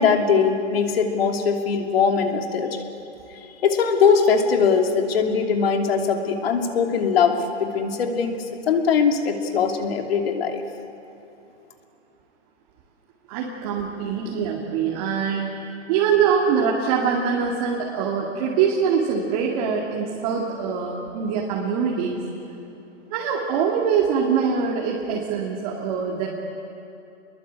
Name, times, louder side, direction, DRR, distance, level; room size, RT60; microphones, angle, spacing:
voice 1, 0.0-2.8 3.6-8.4 8.7-10.6, left 6 dB, 55° left, 4 dB, 2.8 m, -21 dB
voice 2, 13.3-15.5 15.9-22.2 23.1-26.3, right 6 dB, 30° right, -2 dB, 2.5 m, -23 dB
27.0 x 22.0 x 8.4 m, 2.7 s
hypercardioid pair, 160°, 36 cm